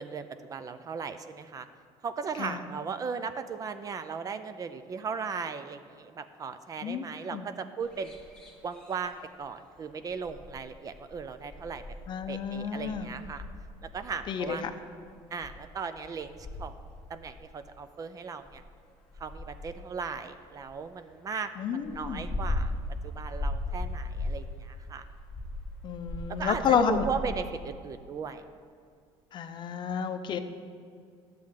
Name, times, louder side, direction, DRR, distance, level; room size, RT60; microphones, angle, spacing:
voice 1, 0.0-1.7 2.0-8.2 8.6-11.8 12.3-13.4 13.9-14.6 15.3-16.7 17.1-18.6 19.2-22.7 23.0-25.0 26.4-28.4, right 5 dB, 30° right, 11 dB, 0.4 m, -37 dB
voice 2, 6.8-7.5 12.1-13.1 14.3-14.7 21.6-22.3 25.8-27.1 29.3-30.4, left 7 dB, 40° left, 8 dB, 0.6 m, -30 dB
sound 1, 7.8-9.5 9.8-15.7 16.0-17.7 18.4-20.7 21.0-21.1 21.4-24.6 24.9-27.7, left 2 dB, 10° left, 1.2 m, -38 dB
10.5 x 7.6 x 3.6 m, 2.2 s
cardioid pair, 135°, 12 cm